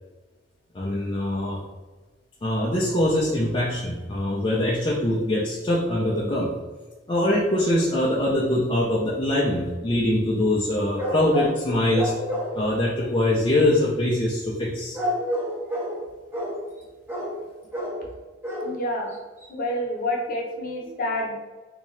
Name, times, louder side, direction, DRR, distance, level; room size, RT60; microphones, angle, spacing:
voice 1, 0.7-1.6 2.4-6.5 7.1-12.1 12.5-15.0, left 1 dB, 25° left, -5 dB, 0.5 m, -23 dB
sound 1, 11.0-11.6 11.9-12.7 14.9-16.0 16.3-16.6 17.1-17.4 17.7-18.0 18.4-18.7 19.1-19.2 19.4-19.5, equal, 10° right, 0.7 m, -28 dB
voice 2, 18.6-19.1 19.5-21.4, left 1 dB, 50° left, -1 dB, 0.9 m, -28 dB
3.5 x 2.7 x 3.1 m, 1.3 s
head